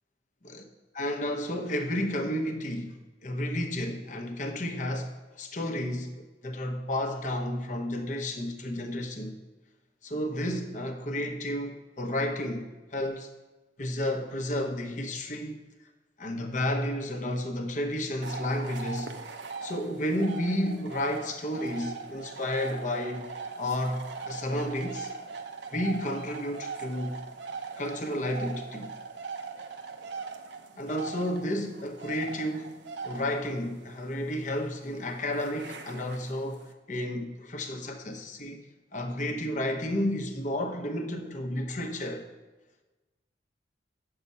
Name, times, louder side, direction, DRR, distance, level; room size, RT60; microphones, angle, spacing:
voice 1, 0.9-9.4 10.0-13.3 13.8-15.5 16.2-19.1 19.6-23.3 23.6-25.1 25.7-27.2 27.8-28.9 30.8-38.6 38.9-42.3, left 1 dB, 45° left, 0.9 m, -32 dB
sound 1, 18.2-36.7, right 4 dB, 75° right, 0.8 m, -41 dB
8.4 x 6.6 x 5.6 m
head